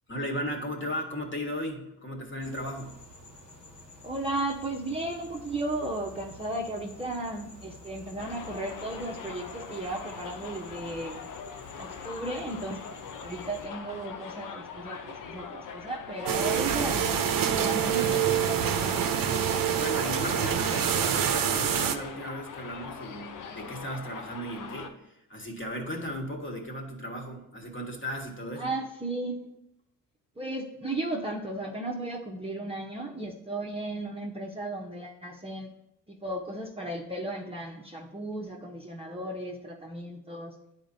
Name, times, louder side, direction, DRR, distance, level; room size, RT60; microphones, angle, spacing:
voice 1, 0.1-2.9 19.6-28.7, equal, 25° left, 2 dB, 1.6 m, -36 dB
sound 1, 2.4-13.7, left 1 dB, 85° left, 2.2 m, -50 dB
voice 2, 4.0-11.2 11.8-12.8 13.2-17.2 17.5-19.3 28.6-29.5 30.4-35.7 36.1-40.5, right 2 dB, 15° right, -2 dB, 0.9 m, -35 dB
Subway metro underground, 8.2-24.9, left 6 dB, 45° left, 0.8 m, -42 dB
sound 2, 16.3-22.0, right 9 dB, 50° right, 0.7 m, -26 dB
10.0 x 4.3 x 2.7 m, 0.86 s
hypercardioid pair, 55°, 45 cm